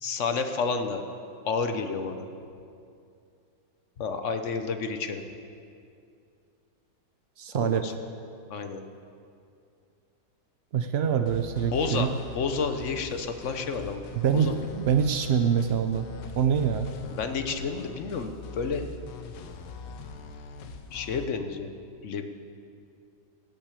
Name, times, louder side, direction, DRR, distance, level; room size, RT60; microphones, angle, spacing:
voice 1, 0.0-1.0 1.4-2.3 4.0-5.2 7.5-7.9 8.5-8.8 11.7-12.1 12.3-14.0 14.3-14.5 17.1-18.8 20.9-21.7 22.0-22.3, left 5 dB, 55° left, 7 dB, 0.9 m, -30 dB
voice 2, 7.4-8.0 10.7-12.1 14.1-16.1 16.4-16.9, right 7 dB, 90° right, 7 dB, 0.5 m, -25 dB
sound 1, 11.3-21.3, left 3 dB, 80° left, 1.4 m, -42 dB
17.0 x 6.1 x 8.2 m, 2.5 s
omnidirectional pair, 1.9 m